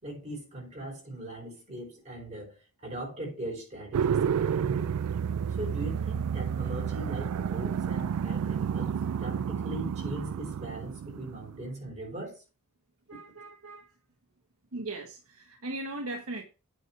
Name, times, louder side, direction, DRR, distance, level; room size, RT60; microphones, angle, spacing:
voice 1, 0.0-4.9 5.6-12.4, right 1 dB, 30° right, 4.8 m, -40 dB
sound 1, 3.9-11.6, right 7 dB, 85° right, 0.3 m, -30 dB
voice 2, 13.1-13.9 14.7-16.4, right 2 dB, 70° right, 1.4 m, -38 dB
9.2 x 4.7 x 5.9 m
head